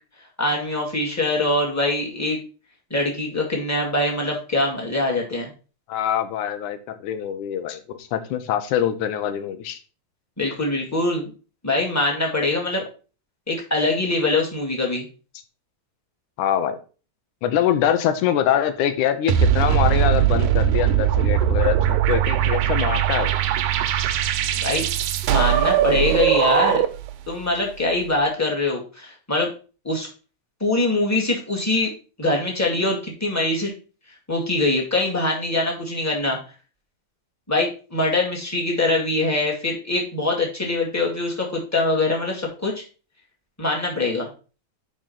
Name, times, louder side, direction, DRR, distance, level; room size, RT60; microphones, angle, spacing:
voice 1, 0.4-2.4 2.9-5.5 10.4-11.3 11.6-12.8 13.5-15.1 24.6-24.9 25.3-26.8 27.3-29.5 29.8-30.1 30.6-31.9 32.2-33.7 34.3-36.4 37.5-42.8 43.6-44.3, left 2 dB, 5° left, -1 dB, 1.5 m, -23 dB
voice 2, 5.9-9.8 16.4-16.8 17.4-23.4, left 10 dB, 90° left, 9 dB, 2.3 m, -24 dB
sound 1, 19.3-27.1, right 11 dB, 85° right, 2.1 m, -20 dB
5.3 x 5.3 x 5.7 m, 0.35 s
omnidirectional pair, 3.4 m